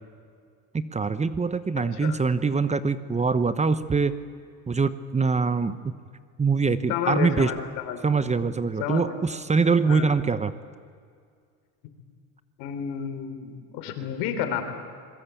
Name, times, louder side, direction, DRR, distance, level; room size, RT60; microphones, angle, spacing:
voice 1, 0.7-4.2 4.7-5.8 6.4-7.5 8.0-10.5, right 4 dB, 15° right, 13 dB, 1.0 m, -23 dB
voice 2, 6.9-8.0 8.8-9.1 9.9-10.2 12.6-14.6, left 8 dB, 80° left, 7 dB, 4.0 m, -30 dB
26.0 x 22.0 x 8.5 m, 2.2 s
supercardioid pair, 110°, 39 cm